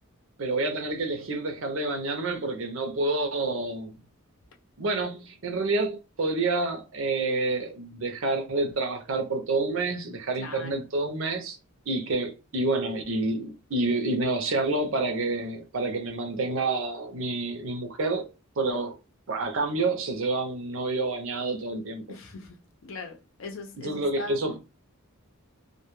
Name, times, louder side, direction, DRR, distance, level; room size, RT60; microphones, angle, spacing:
voice 1, 0.4-3.9 4.8-11.6 11.9-18.2 18.6-19.0 19.3-22.0 23.8-24.6, right 2 dB, 65° right, 0.6 m, -28 dB
voice 2, 10.4-10.7 22.1-24.4, left 3 dB, 65° left, 0.6 m, -40 dB
2.2 x 2.2 x 3.0 m
head